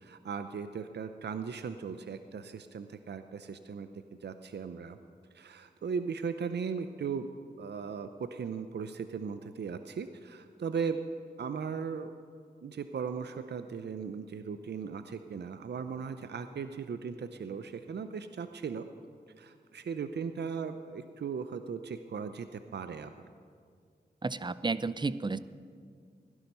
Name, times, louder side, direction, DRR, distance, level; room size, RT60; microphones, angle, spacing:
voice 1, 0.0-3.9 4.2-5.0 5.3-7.3 7.6-11.0 11.4-12.1 12.6-18.9 19.4-23.1, right 6 dB, 75° right, 10 dB, 0.6 m, -37 dB
voice 2, 24.2-25.4, right 3 dB, 25° right, 15 dB, 0.6 m, -32 dB
16.5 x 11.5 x 5.4 m, 2.2 s
cardioid pair, 40°, 18 cm